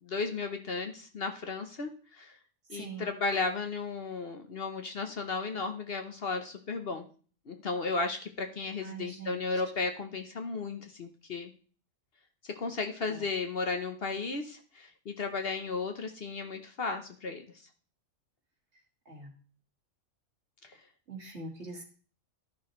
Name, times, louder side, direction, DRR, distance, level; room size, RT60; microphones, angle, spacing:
voice 1, 0.0-2.4 2.7-7.0 7.5-11.5 12.6-17.4 20.6-20.7, left 4 dB, 50° left, 6 dB, 1.1 m, -34 dB
voice 2, 2.7-3.1 8.8-9.6 13.0-13.3 19.1-19.3 21.1-21.8, right 3 dB, 55° right, 1 dB, 2.2 m, -43 dB
13.0 x 6.1 x 3.1 m, 0.41 s
omnidirectional pair, 1.4 m